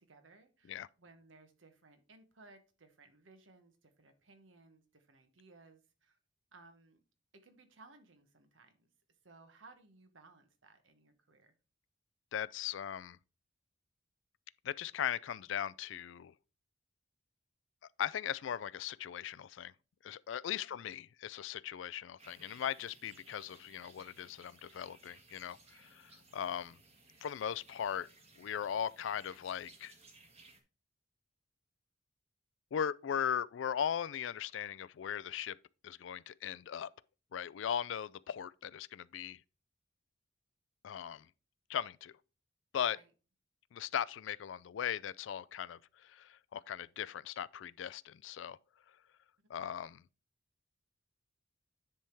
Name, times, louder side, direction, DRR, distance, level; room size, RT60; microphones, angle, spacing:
voice 1, 0.0-6.2 6.5-7.0 7.3-8.9 9.2-11.5 20.7-20.9 42.9-43.1, right 3 dB, 85° right, 1.2 m, -61 dB
voice 2, 12.3-13.2 14.6-16.3 18.0-19.7 20.0-26.8 27.2-28.1 28.4-29.9 32.7-35.6 35.8-36.9 37.3-39.4 40.8-41.3 41.7-42.2 42.7-43.0 43.7-48.6 49.5-50.0, left 9 dB, 75° left, 0.3 m, -38 dB
sound 1, 22.2-30.6, right 3 dB, 35° right, 1.5 m, -61 dB
10.0 x 3.5 x 4.5 m
head